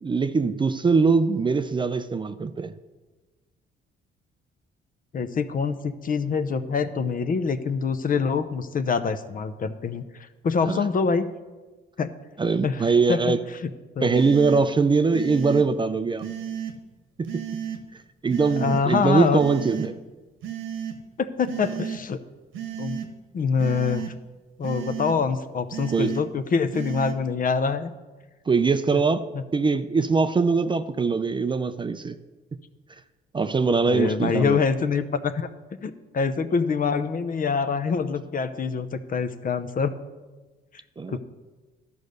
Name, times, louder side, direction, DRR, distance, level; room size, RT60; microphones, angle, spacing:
voice 1, 0.0-2.7 10.7-10.8 12.4-13.4 14.0-16.3 17.2-17.4 18.2-20.0 25.9-26.1 28.5-32.1 33.3-34.6 41.0-41.2, right 4 dB, 25° right, 11 dB, 0.4 m, -22 dB
voice 2, 5.1-10.0 10.4-11.3 12.0-12.1 12.6-12.8 13.1-13.3 14.0-14.1 18.6-19.4 21.2-22.2 22.8-23.0 23.3-24.1 24.6-27.9 33.9-35.5 35.8-39.9 41.1-41.2, left 5 dB, 45° left, 11 dB, 0.7 m, -25 dB
sound 1, 14.1-14.6 15.1-15.6 16.2-16.7 17.3-17.8 18.3-18.8 19.4-19.9 20.4-20.9 21.4-22.0 22.5-23.1 23.6-24.1 24.6-25.2 25.7-26.2 26.7-27.1, right 9 dB, 85° right, 1.2 m, -33 dB
12.0 x 5.3 x 6.5 m, 1.2 s
cardioid pair, 90°, 20 cm